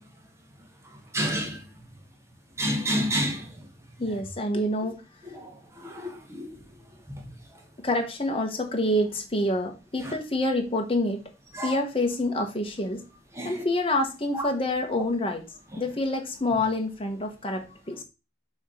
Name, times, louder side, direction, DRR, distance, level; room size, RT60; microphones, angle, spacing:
voice 1, 1.1-1.5 2.6-3.4 5.9-6.5 11.6-11.7 13.4-13.5, equal, 15° right, 1.1 m, -27 dB
voice 2, 4.0-5.0 7.8-11.2 11.6-13.0 13.4-15.4 15.8-18.0, left 1 dB, 30° left, 1.1 m, -27 dB
6.3 x 3.1 x 4.9 m
head